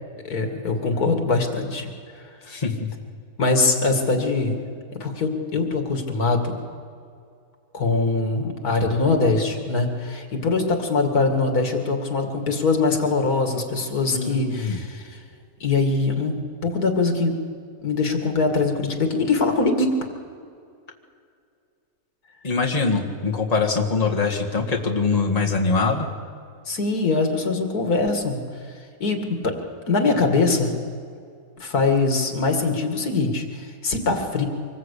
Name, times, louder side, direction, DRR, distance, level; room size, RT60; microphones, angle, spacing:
voice 1, 0.1-1.9 2.5-2.6 3.4-4.6 4.9-6.6 7.7-15.2 15.6-16.4 16.6-17.4 17.8-19.9 26.7-28.4 29.0-29.6 29.9-30.8 31.6-34.5, left 3 dB, 85° left, 4 dB, 2.6 m, -22 dB
voice 2, 2.5-2.9 14.1-14.8 22.4-26.1, left 4 dB, 25° left, 0 dB, 1.9 m, -23 dB
25.0 x 20.5 x 8.3 m, 2.3 s
omnidirectional pair, 1.6 m